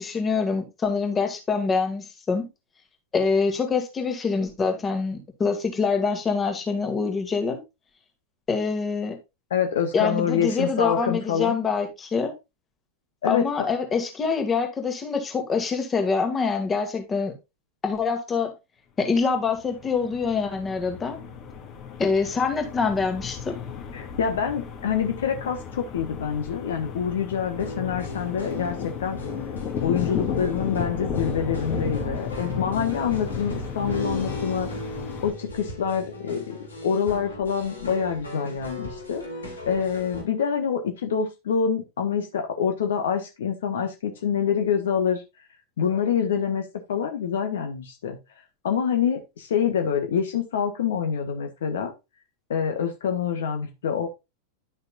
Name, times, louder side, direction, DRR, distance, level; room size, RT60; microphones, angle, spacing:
voice 1, 0.0-2.5 3.1-7.6 8.5-9.2 9.9-12.3 13.2-17.3 17.8-18.5 19.0-21.2 22.0-23.6, left 5 dB, 20° left, 2.0 m, -25 dB
voice 2, 9.5-11.6 13.2-13.5 23.9-29.2 29.8-34.7 35.2-39.2 39.7-45.2 45.8-46.6 46.9-48.2 48.6-51.9 52.5-54.1, left 7 dB, 60° left, 1.3 m, -26 dB
sound 1, 19.4-35.3, left 6 dB, 35° left, 2.0 m, -34 dB
sound 2, 27.6-40.2, left 1 dB, 75° left, 3.5 m, -38 dB
11.0 x 6.6 x 2.4 m
figure-of-eight pair, 90°, 0 cm